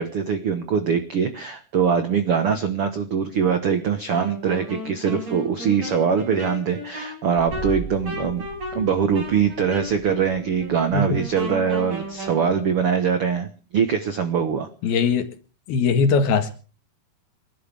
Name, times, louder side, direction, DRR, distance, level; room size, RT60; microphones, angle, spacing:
voice 1, 0.0-8.4 8.7-14.7, right 7 dB, 65° right, 1.4 m, -23 dB
Wind instrument woodwind instrument, 4.1-12.4, left 1 dB, 45° right, 7.4 m, -35 dB
sound 1, 7.4-12.9, right 2 dB, 25° right, 2.6 m, -39 dB
voice 2, 14.8-15.3 15.7-16.5, left 5 dB, 75° left, 3.5 m, -20 dB
29.5 x 12.5 x 3.5 m
omnidirectional pair, 4.5 m